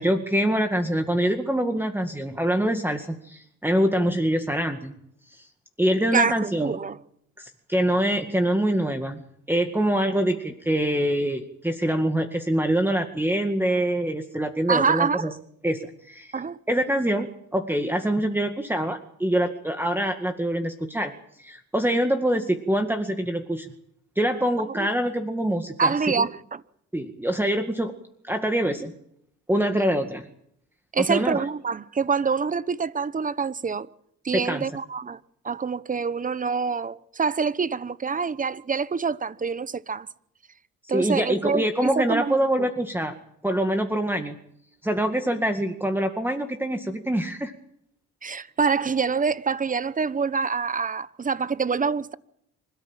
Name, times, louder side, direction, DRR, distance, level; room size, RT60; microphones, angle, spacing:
voice 1, 0.0-5.0 5.3-5.5 5.8-6.8 7.4-9.2 9.5-15.3 15.6-16.4 16.7-21.1 21.4-23.7 24.2-26.3 26.9-27.9 28.2-28.9 29.5-30.2 31.0-31.5 34.3-34.7 40.9-43.1 43.4-44.4 44.8-47.5, right 1 dB, 5° right, 2.0 m, -25 dB
voice 2, 6.1-7.0 14.7-15.3 16.3-16.6 24.7-24.9 25.8-26.6 30.9-33.9 34.2-35.2 35.4-40.1 40.9-42.7 48.2-52.2, right 5 dB, 25° right, 1.0 m, -26 dB
26.0 x 13.5 x 8.9 m
cardioid pair, 90°, 30 cm